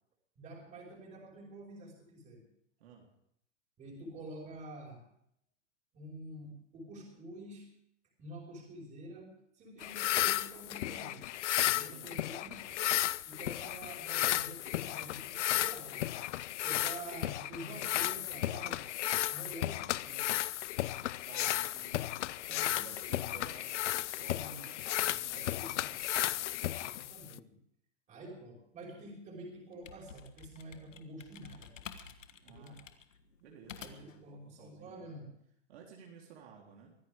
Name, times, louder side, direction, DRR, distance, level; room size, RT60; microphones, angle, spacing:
voice 1, 0.4-2.4 3.8-5.0 5.9-7.7 8.2-11.2 11.7-12.5 13.3-16.2 16.6-18.9 19.3-20.3 22.5-22.9 24.3-24.8 25.2-25.9 26.8-27.6 28.1-31.7 32.5-32.8 33.8-35.3, right 1 dB, 20° right, -2 dB, 5.3 m, -48 dB
sound 1, 9.8-27.4, left 14 dB, 70° left, 0.6 m, -34 dB
voice 2, 11.7-12.8 21.2-26.0 32.4-32.8 33.4-35.2 35.7-36.9, right 6 dB, 55° right, -1 dB, 3.7 m, -55 dB
sound 2, 29.6-34.2, left 7 dB, 90° left, 1.6 m, -51 dB
24.0 x 14.5 x 3.7 m, 0.73 s
hypercardioid pair, 150°, 37 cm